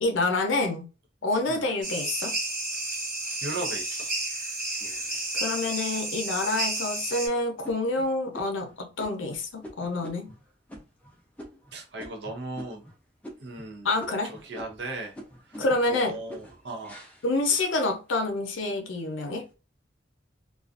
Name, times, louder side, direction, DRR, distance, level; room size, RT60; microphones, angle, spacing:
voice 1, 0.0-0.9 1.2-2.3 5.3-10.3 13.8-14.3 15.6-16.1 17.2-19.5, left 2 dB, 85° left, 0.6 m, -27 dB
sound 1, 1.8-7.3, right 2 dB, 45° right, 1.0 m, -31 dB
voice 2, 3.4-4.1 11.7-12.9 13.4-13.9 14.2-15.2 15.5-15.6 15.9-17.0, right 2 dB, 60° right, 0.5 m, -37 dB
sound 2, 4.8-5.7 6.3-6.4 6.8-7.2 7.6-13.0 13.2-13.7 14.0-18.3 18.8-19.3, equal, 5° left, 0.4 m, -46 dB
2.4 x 2.3 x 2.4 m
head